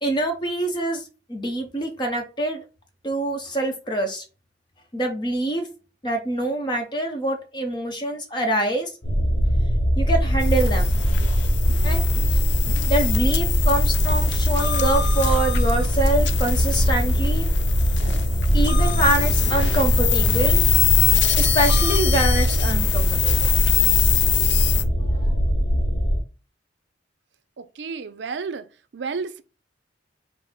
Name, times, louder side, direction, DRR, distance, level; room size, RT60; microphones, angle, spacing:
voice 1, 0.0-1.0 1.3-2.6 3.0-4.2 4.9-5.7 6.0-8.9 10.0-10.9 11.8-12.4 12.9-17.5 18.1-18.3 18.5-20.6 21.4-23.6, right 1 dB, 25° left, 0.9 m, -25 dB
sound 1, 9.0-26.2, equal, 45° left, 1.0 m, -21 dB
sound 2, 10.4-24.8, left 10 dB, 70° left, 0.5 m, -25 dB
voice 2, 27.6-28.7 28.9-29.4, right 5 dB, 65° right, 0.4 m, -31 dB
5.2 x 2.0 x 3.7 m
head